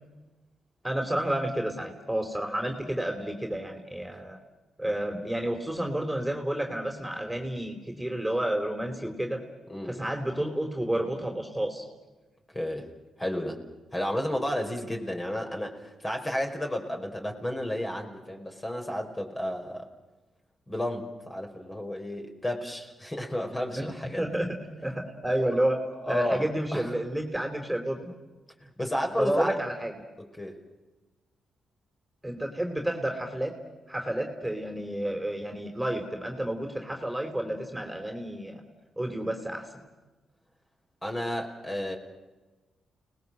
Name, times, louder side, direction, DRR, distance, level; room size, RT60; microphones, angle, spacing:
voice 1, 0.8-4.4 4.8-9.4 9.8-11.9 23.8-23.9 24.2-25.8 26.1-28.1 29.2-29.9 32.2-33.5 33.9-38.6 39.0-39.7, right 1 dB, 5° right, 3 dB, 4.3 m, -30 dB
voice 2, 9.7-10.0 12.5-12.9 13.2-13.6 13.9-19.9 20.7-24.3 25.4-25.6 26.0-27.0 28.6-29.5 30.2-30.6 41.0-42.0, left 1 dB, 20° left, 2 dB, 5.3 m, -32 dB
30.0 x 20.0 x 7.8 m, 1.2 s
cardioid pair, 65°, 0 cm